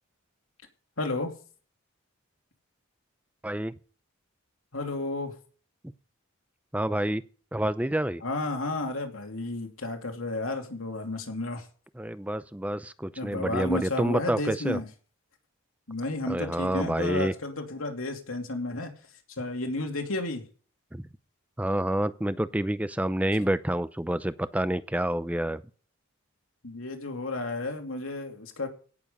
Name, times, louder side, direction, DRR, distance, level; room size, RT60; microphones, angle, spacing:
voice 1, 1.0-1.3 4.7-5.4 8.2-11.7 13.2-14.9 15.9-18.9 19.4-20.4 26.6-28.7, left 2 dB, 80° left, 3 dB, 2.8 m, -32 dB
voice 2, 3.4-3.7 6.7-7.2 7.5-8.2 12.0-14.8 16.3-17.3 20.9-21.0 21.6-25.6, right 1 dB, 5° right, 14 dB, 0.5 m, -28 dB
17.5 x 7.3 x 5.4 m, 0.41 s
head